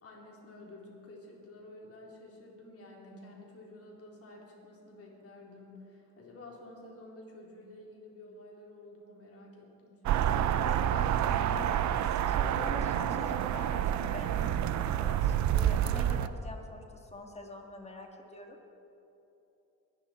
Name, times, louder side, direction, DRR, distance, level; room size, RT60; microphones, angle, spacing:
voice 1, 0.0-10.5, left 1 dB, 50° left, -2 dB, 3.9 m, -51 dB
sound 1, 10.1-16.3, right 10 dB, 70° right, 0.6 m, -28 dB
voice 2, 10.5-18.6, left 2 dB, 20° left, 1 dB, 2.2 m, -44 dB
22.0 x 11.0 x 4.5 m, 2.9 s
cardioid pair, 90°, 30 cm